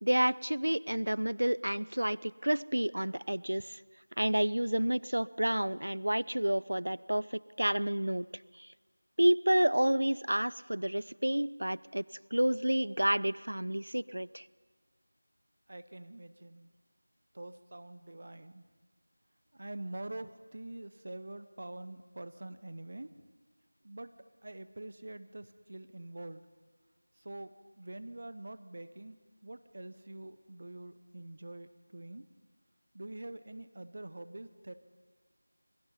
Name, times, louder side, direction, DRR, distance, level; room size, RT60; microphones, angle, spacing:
voice 1, 0.0-3.8 4.2-8.3 8.6-8.7 9.2-12.0 12.3-14.5, right 1 dB, 60° right, 21 dB, 0.5 m, -29 dB
voice 2, 15.7-16.7 17.3-18.6 19.5-23.1 23.8-24.1 24.4-26.4 27.2-32.3 32.9-34.7, right 1 dB, 35° right, 12 dB, 0.8 m, -45 dB
25.0 x 22.0 x 5.6 m, 1.5 s
figure-of-eight pair, 170°, 0 cm